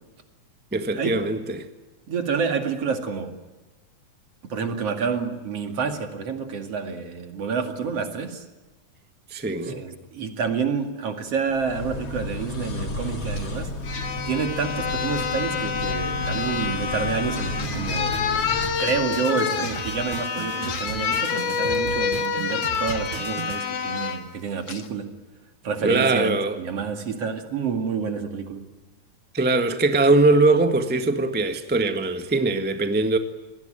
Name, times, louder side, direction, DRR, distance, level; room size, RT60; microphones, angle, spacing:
voice 1, 0.7-1.6 9.3-9.8 25.8-26.6 29.3-33.2, right 2 dB, 10° right, 0.6 m, -21 dB
voice 2, 2.1-3.4 4.5-8.4 9.6-13.7 14.3-18.2 18.8-25.1 25.6-28.6, right 5 dB, 55° right, 3.2 m, -28 dB
sound 1, 11.5-18.7, left 1 dB, 50° left, 3.8 m, -32 dB
sound 2, 13.4-13.5 13.8-24.2 24.7-24.9, left 6 dB, 75° left, 3.4 m, -28 dB
sound 3, 17.6-23.6, right 8 dB, 80° right, 2.8 m, -37 dB
27.0 x 19.5 x 9.0 m
omnidirectional pair, 3.5 m